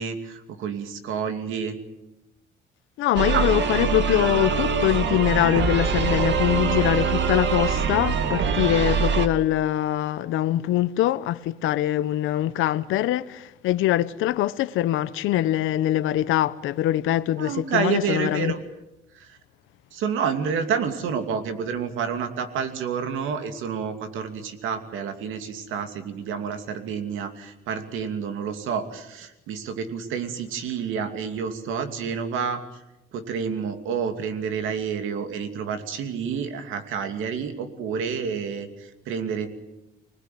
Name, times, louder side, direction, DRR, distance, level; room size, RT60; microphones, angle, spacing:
voice 1, 0.0-1.8 3.3-3.4 17.4-18.6 19.1-19.4 19.9-32.8 33.1-39.5, right 6 dB, 90° right, 2.7 m, -29 dB
voice 2, 3.0-18.5, left 13 dB, 90° left, 0.8 m, -23 dB
sound 1, 3.2-9.3, right 6 dB, 65° right, 2.0 m, -23 dB
26.5 x 19.5 x 9.4 m
cardioid pair, 90°, 20 cm